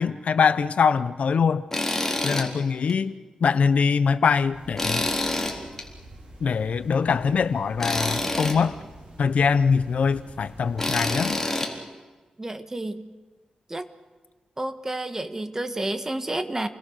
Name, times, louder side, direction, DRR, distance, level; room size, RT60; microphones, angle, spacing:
voice 1, 0.0-1.7 2.2-3.1 3.4-5.1 6.4-8.7 9.2-11.4, left 6 dB, 70° left, 14 dB, 0.9 m, -23 dB
Tools, 1.7-2.5 2.9-3.0 4.8-5.8 7.8-8.6 10.8-11.7, left 2 dB, 15° left, 3.9 m, -26 dB
sound 1, 4.5-11.3, right 1 dB, 50° right, 7.8 m, -47 dB
voice 2, 12.4-13.1 13.7-13.9 14.6-16.7, right 1 dB, 20° right, 9 dB, 1.6 m, -30 dB
29.5 x 21.0 x 6.5 m, 1.3 s
wide cardioid pair, 95°, 2 cm